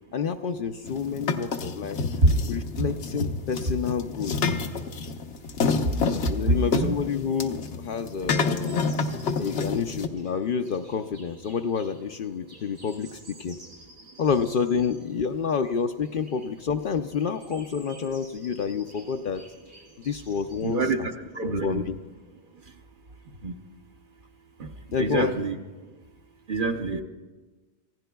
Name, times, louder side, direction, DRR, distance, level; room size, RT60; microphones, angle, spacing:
voice 1, 0.1-2.0 2.5-4.5 6.2-8.8 9.4-13.6 14.2-19.4 20.0-21.1 21.6-22.0 24.9-25.4, left 6 dB, 60° left, 7 dB, 0.6 m, -29 dB
sound 1, 0.8-10.1, left 4 dB, 80° left, 1.1 m, -29 dB
voice 2, 6.5-7.0 20.6-21.9 23.4-23.5 25.0-25.6 26.5-27.0, right 3 dB, 50° right, 5 dB, 1.0 m, -26 dB
sound 2, 8.7-20.7, right 1 dB, 90° right, 5.1 m, -52 dB
27.5 x 15.5 x 2.3 m, 1.3 s
omnidirectional pair, 1.2 m